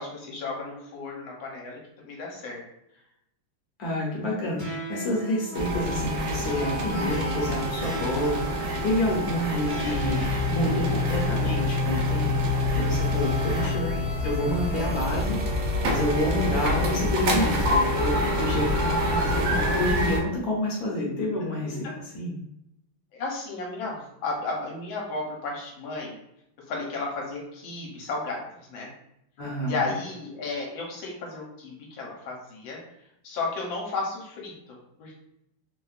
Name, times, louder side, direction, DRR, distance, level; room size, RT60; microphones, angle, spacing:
voice 1, 0.0-2.6 8.5-8.8 17.3-17.8 21.8-21.9 23.1-26.1 26.7-28.9 29.7-32.8 33.2-35.2, left 3 dB, 75° left, -2 dB, 1.4 m, -34 dB
voice 2, 3.8-12.3 12.7-13.9 14.2-15.4 15.8-21.9 22.1-22.3 29.4-29.9, left 1 dB, 60° left, -3 dB, 1.1 m, -28 dB
sound 1, 4.6-17.1, left 4 dB, 20° right, 1.1 m, -31 dB
sound 2, 5.5-20.2, equal, 85° right, 0.7 m, -27 dB
3.3 x 2.2 x 2.3 m, 0.81 s
omnidirectional pair, 2.2 m